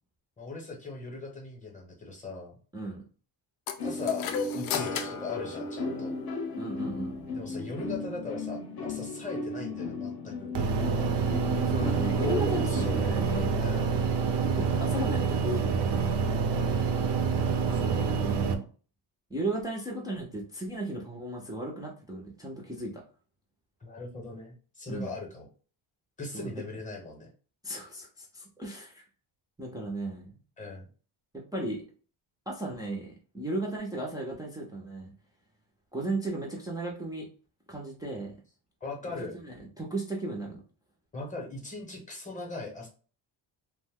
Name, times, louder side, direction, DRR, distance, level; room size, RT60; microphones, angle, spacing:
voice 1, 0.4-2.5 3.8-6.1 7.3-10.5 12.1-12.9 13.6-14.0 16.5-16.9 17.7-17.8 23.8-25.5 26.2-27.3 30.6-30.9 38.8-39.3 41.1-42.9, left 3 dB, 15° left, 0 dB, 0.8 m, -39 dB
sound 1, 3.7-6.4, left 7 dB, 90° left, 0.6 m, -34 dB
sound 2, 3.8-14.0, left 3 dB, 50° left, 0.7 m, -36 dB
voice 2, 6.6-7.1 11.7-13.6 14.4-16.2 17.7-18.6 19.3-23.0 24.9-25.1 26.3-26.5 27.6-29.0 29.6-30.3 31.5-31.8 32.5-35.1 35.9-37.3 37.7-38.3 39.1-40.6, right 2 dB, 10° right, -2 dB, 0.4 m, -35 dB
sound 3, 10.5-18.5, right 5 dB, 60° right, 0.5 m, -27 dB
2.6 x 2.1 x 3.5 m, 0.39 s
cardioid pair, 150°, 47 cm